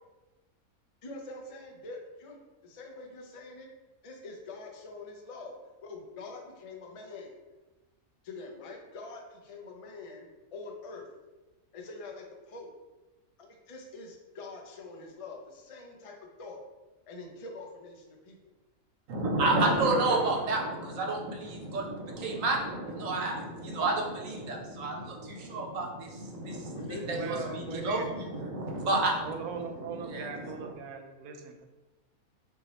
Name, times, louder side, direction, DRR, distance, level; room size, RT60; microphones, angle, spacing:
voice 1, 1.0-3.7 4.0-5.5 5.8-7.4 8.2-11.1 11.7-12.7 13.4-16.6 17.1-18.4 19.4-20.4 26.7-27.6, left 3 dB, 40° left, 1 dB, 0.5 m, -45 dB
voice 2, 19.1-29.7 30.0-30.7, right 2 dB, 65° right, 1 dB, 1.2 m, -30 dB
voice 3, 27.1-28.1 29.2-31.7, right 5 dB, 85° right, 5 dB, 1.1 m, -40 dB
5.7 x 2.8 x 3.1 m, 1.1 s
omnidirectional pair, 1.5 m